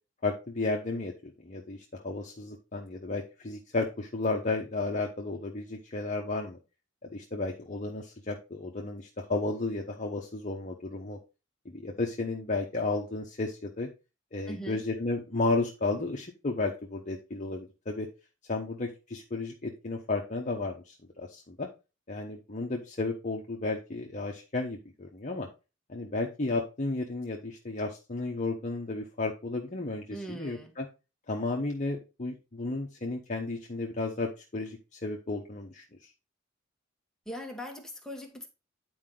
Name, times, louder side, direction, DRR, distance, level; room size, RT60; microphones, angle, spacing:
voice 1, 0.2-6.6 7.0-11.2 11.6-13.9 14.3-18.1 18.5-21.7 22.1-25.5 25.9-30.9 31.3-36.1, left 3 dB, 40° left, 1.0 m, -33 dB
voice 2, 14.5-14.8 30.1-30.7 37.2-38.5, equal, 5° left, 1.5 m, -40 dB
9.6 x 4.8 x 3.8 m
head